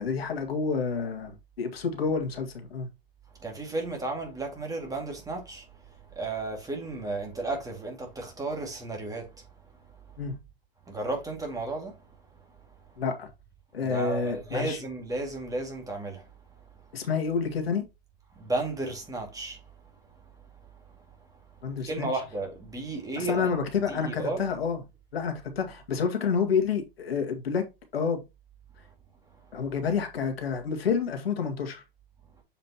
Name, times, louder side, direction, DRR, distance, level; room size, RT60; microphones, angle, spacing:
voice 1, 0.0-2.9 10.2-10.3 13.0-13.3 13.7-14.8 16.9-17.8 21.6-22.1 23.2-24.8 25.1-27.6 27.9-28.2 29.5-31.8, left 5 dB, 80° left, 1.9 m, -29 dB
voice 2, 3.4-5.6 6.1-9.3 10.9-12.0 13.8-16.3 18.4-19.6 21.8-23.5 23.9-24.5, right 2 dB, 10° right, 2.3 m, -33 dB
7.3 x 5.0 x 2.9 m
hypercardioid pair, 110°, 30 cm